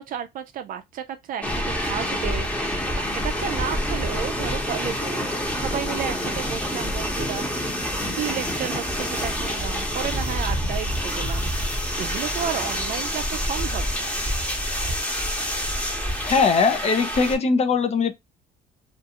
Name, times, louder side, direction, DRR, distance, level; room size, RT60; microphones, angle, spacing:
voice 1, 0.0-2.5 2.9-7.4 8.1-11.5 12.0-14.2, right 9 dB, 55° right, 0.4 m, -32 dB
sound 1, 1.4-17.4, equal, 10° left, 0.9 m, -27 dB
voice 2, 16.2-18.1, left 5 dB, 40° left, 0.5 m, -20 dB
2.5 x 2.3 x 2.7 m
cardioid pair, 110°, 17 cm